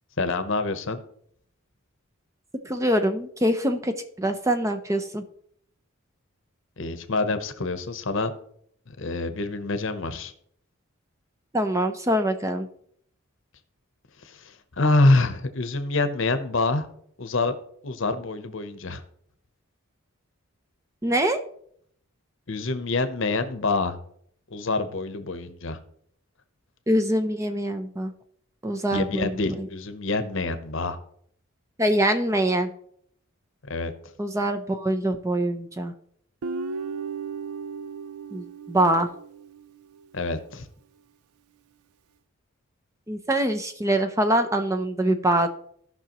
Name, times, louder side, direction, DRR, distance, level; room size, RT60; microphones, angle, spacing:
voice 1, 0.2-1.0 6.8-8.3 8.9-10.3 14.2-16.9 17.2-17.5 17.8-19.0 22.5-24.0 24.5-25.8 28.9-31.0 33.7-33.9 40.1-40.7, left 2 dB, 60° left, 10 dB, 0.8 m, -26 dB
voice 2, 2.6-5.2 11.5-12.7 21.0-21.4 26.9-28.1 28.6-29.7 31.8-32.7 34.2-35.9 38.3-39.1 43.1-45.5, right 1 dB, 15° right, 7 dB, 0.5 m, -24 dB
Guitar, 36.4-39.7, right 5 dB, 80° right, 0.4 m, -35 dB
16.5 x 5.9 x 3.0 m, 0.66 s
head